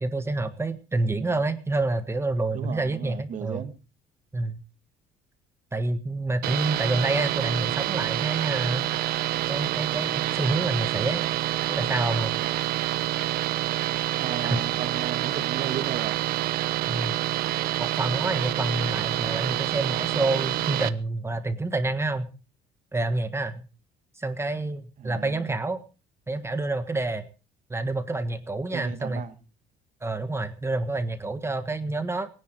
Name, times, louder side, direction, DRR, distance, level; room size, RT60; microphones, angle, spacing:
voice 1, 0.0-3.7 4.3-4.6 5.7-8.9 9.5-11.2 11.7-12.3 14.5-14.6 16.9-17.2 17.8-22.3 22.9-23.6 24.2-25.8 26.3-27.3 27.7-29.2 30.0-32.3, right 2 dB, 15° right, 1.5 m, -28 dB
voice 2, 1.0-1.4 2.5-3.7 14.2-16.2 25.0-25.5 26.4-26.5 28.7-29.4, right 9 dB, 50° right, 2.2 m, -35 dB
sound 1, 6.4-20.9, right 14 dB, 70° right, 1.0 m, -27 dB
22.5 x 10.5 x 4.7 m
cardioid pair, 100°, 16 cm